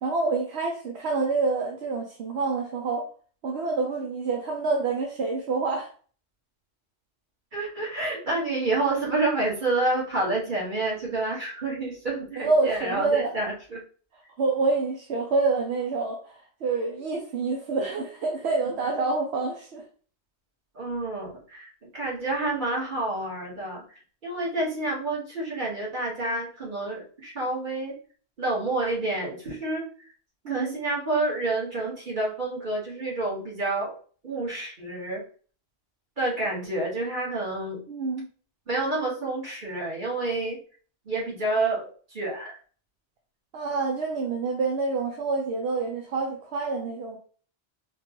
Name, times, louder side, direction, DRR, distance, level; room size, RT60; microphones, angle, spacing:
voice 1, 0.0-3.1 3.4-5.9 12.4-13.3 14.4-16.3 16.6-19.8 30.4-30.7 37.9-38.3 43.5-47.2, right 3 dB, 70° right, 1 dB, 0.9 m, -27 dB
voice 2, 7.5-13.8 20.7-23.8 24.2-27.9 28.4-29.8 30.5-33.9 34.2-35.2 36.2-37.8 38.7-40.6 41.0-42.6, right 2 dB, 45° right, -5 dB, 1.7 m, -29 dB
4.2 x 2.3 x 3.0 m, 0.41 s
omnidirectional pair, 1.2 m